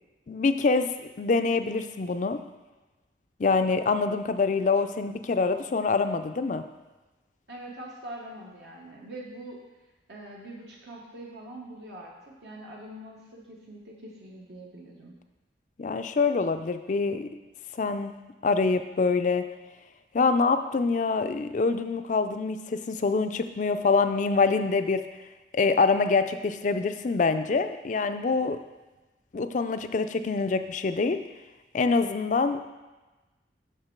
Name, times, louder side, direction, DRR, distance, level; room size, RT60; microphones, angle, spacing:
voice 1, 0.3-0.9 1.2-2.4 3.4-6.6 15.8-17.3 17.7-18.2 18.4-19.4 20.1-25.0 25.5-28.6 29.3-31.2 31.7-32.6, left 4 dB, 45° left, 9 dB, 0.4 m, -25 dB
voice 2, 7.5-9.6 10.1-15.2, right 1 dB, 65° right, -3 dB, 1.0 m, -43 dB
6.7 x 6.3 x 4.5 m, 1.1 s
head